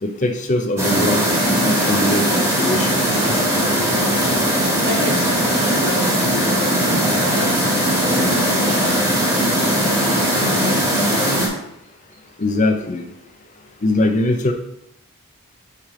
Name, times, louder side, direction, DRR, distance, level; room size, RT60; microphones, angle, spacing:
voice 1, 0.0-2.3 2.6-3.2 12.4-13.1 13.8-14.5, left 1 dB, 35° left, 5 dB, 0.5 m, -21 dB
sound 1, 0.8-11.5, equal, 10° right, 1.5 m, -19 dB
voice 2, 4.8-6.8 7.2-10.9, left 1 dB, 55° right, -1 dB, 1.6 m, -30 dB
8.6 x 3.2 x 3.7 m, 0.78 s
head